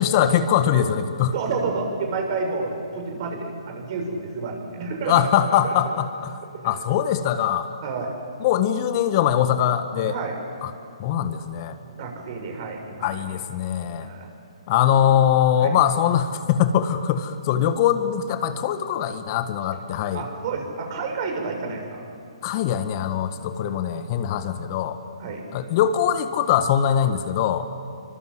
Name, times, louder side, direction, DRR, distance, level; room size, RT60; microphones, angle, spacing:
voice 1, 0.0-1.3 5.1-7.7 8.4-10.1 10.6-10.7 11.0-11.7 13.0-14.1 14.7-20.2 22.4-25.0 25.5-27.7, left 9 dB, 40° left, 9 dB, 1.5 m, -22 dB
voice 2, 1.3-5.6 6.5-6.8 7.8-8.1 10.1-10.4 11.8-13.4 14.0-14.3 15.6-15.7 20.1-22.0 23.6-23.7 25.2-25.4, right 4 dB, 45° right, 3 dB, 6.9 m, -30 dB
28.5 x 24.5 x 8.0 m, 2.3 s
hypercardioid pair, 135°, 3 cm